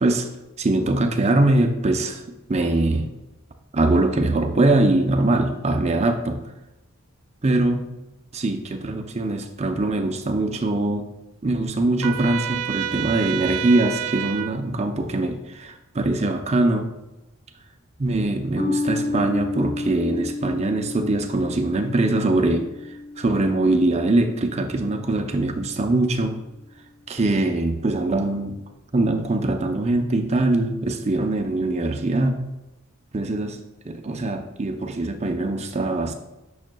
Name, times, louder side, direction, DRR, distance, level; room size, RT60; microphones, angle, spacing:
voice 1, 0.6-3.1 3.7-6.4 7.4-7.9 8.3-11.1 11.4-16.9 18.0-22.7 23.2-26.4 27.1-28.6 28.9-32.4 33.1-33.6 33.9-36.1, right 2 dB, 30° right, 5 dB, 0.6 m, -22 dB
Trumpet, 12.0-14.5, right 11 dB, 85° right, 0.5 m, -29 dB
sound 1, 18.6-25.3, left 2 dB, 85° left, 1.4 m, -31 dB
8.9 x 6.4 x 2.3 m, 1.0 s
head